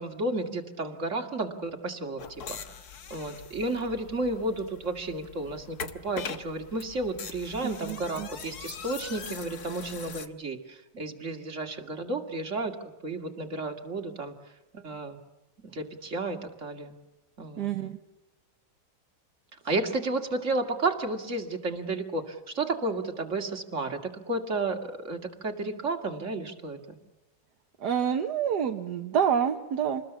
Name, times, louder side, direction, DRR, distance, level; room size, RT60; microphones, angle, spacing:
voice 1, 0.0-2.2 2.5-2.6 3.1-5.8 6.0-12.7 13.0-14.3 14.7-15.2 15.6-16.9 17.4-17.7 19.6-24.0 24.3-27.0, right 2 dB, 40° right, 4 dB, 2.6 m, -32 dB
sound 1, 2.2-10.3, left 6 dB, 60° left, 1.8 m, -42 dB
voice 2, 7.8-8.3 17.6-18.0 27.8-30.0, right 8 dB, 65° right, 5 dB, 1.7 m, -27 dB
27.5 x 20.5 x 7.2 m, 1.0 s
omnidirectional pair, 2.0 m